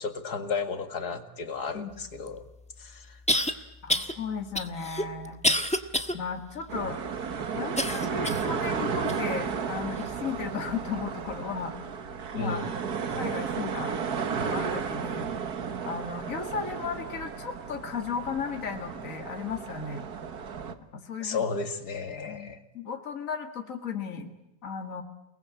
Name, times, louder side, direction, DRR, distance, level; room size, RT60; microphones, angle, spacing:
voice 1, 0.0-2.4 2.8-3.2 12.4-12.8 21.2-22.6, left 4 dB, 75° left, 8 dB, 2.5 m, -33 dB
sound 1, 2.3-2.4 3.3-3.5 3.9-4.1 4.5-6.1 6.6-6.7 7.8-8.5 9.1-9.2 10.0-10.1, equal, 5° left, 1.3 m, -27 dB
voice 2, 3.8-5.4 6.1-7.0 7.5-11.7 12.3-14.0 14.4-15.3 15.8-20.1 20.9-21.4 22.2-24.3 24.6-25.0, left 6 dB, 55° left, 5 dB, 2.4 m, -35 dB
sound 2, 6.7-20.7, right 6 dB, 70° right, 2.0 m, -33 dB
29.5 x 20.5 x 8.6 m, 0.91 s
omnidirectional pair, 1.7 m